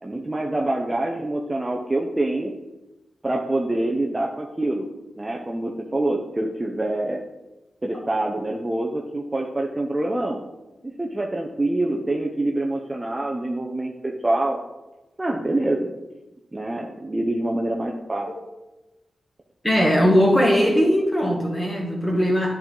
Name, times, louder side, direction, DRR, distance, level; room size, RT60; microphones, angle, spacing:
voice 1, 0.0-2.5 3.2-4.9 5.2-7.2 7.8-10.4 10.8-14.6 15.2-15.9 16.5-18.3, right 1 dB, 20° right, 0 dB, 0.6 m, -25 dB
voice 2, 19.6-22.6, equal, 15° left, -1 dB, 1.7 m, -19 dB
10.5 x 4.5 x 3.8 m, 1.1 s
wide cardioid pair, 120°, 0 cm